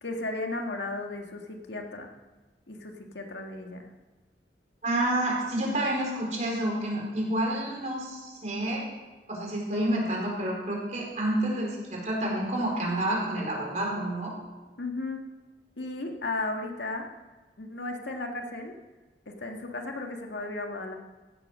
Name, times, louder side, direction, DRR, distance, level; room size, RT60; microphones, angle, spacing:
voice 1, 0.0-2.1 2.7-3.9 14.8-15.2 15.8-17.1 17.6-18.7 19.3-21.0, left 2 dB, 80° left, 3 dB, 1.8 m, -35 dB
voice 2, 4.8-8.8 9.3-14.3, right 1 dB, 40° right, -2 dB, 4.4 m, -29 dB
16.0 x 8.3 x 6.3 m, 1.2 s
head